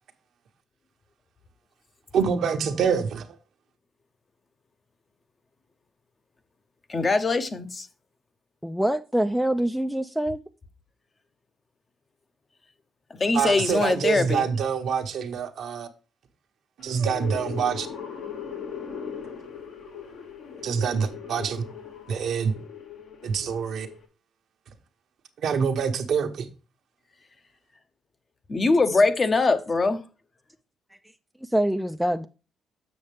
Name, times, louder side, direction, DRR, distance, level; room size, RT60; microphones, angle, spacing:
voice 1, 2.1-3.3 13.3-15.9 16.8-17.9 20.6-21.6 22.1-22.6 23.2-23.9 25.4-26.5, right 6 dB, 70° right, 1.0 m, -26 dB
voice 2, 6.9-7.9 13.2-14.4 28.5-30.0, left 3 dB, 35° left, 0.8 m, -22 dB
voice 3, 8.6-10.4 31.4-32.3, right 1 dB, ahead, 0.4 m, -25 dB
sound 1, 16.8-24.0, left 7 dB, 80° left, 1.9 m, -39 dB
7.1 x 6.5 x 3.4 m
cardioid pair, 90°, 0 cm